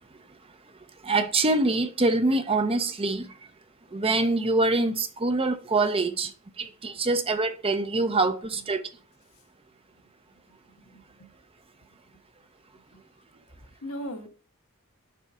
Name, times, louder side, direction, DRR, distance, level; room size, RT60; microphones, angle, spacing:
voice 1, 1.0-3.3 3.9-6.3 6.6-8.8, right 2 dB, 25° right, 0.7 m, -25 dB
voice 2, 10.4-11.3 12.9-13.0 13.8-14.3, equal, 70° left, 1.3 m, -39 dB
6.9 x 4.7 x 6.0 m
head